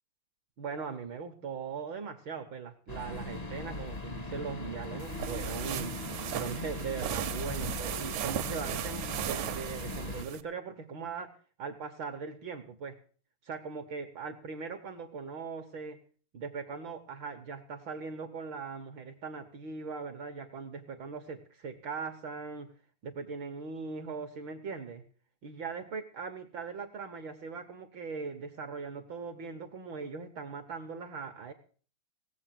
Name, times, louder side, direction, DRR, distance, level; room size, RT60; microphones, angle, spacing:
voice 1, 0.6-5.9 6.3-11.3 11.6-13.0 13.4-16.0 16.3-22.7 23.0-25.0 25.4-31.5, right 5 dB, 60° right, 7 dB, 1.3 m, -40 dB
sound 1, 2.9-10.2, left 2 dB, 30° left, 0.6 m, -39 dB
sound 2, 5.0-10.4, right 11 dB, 75° right, 2.1 m, -37 dB
17.5 x 7.5 x 7.5 m, 0.42 s
omnidirectional pair, 3.3 m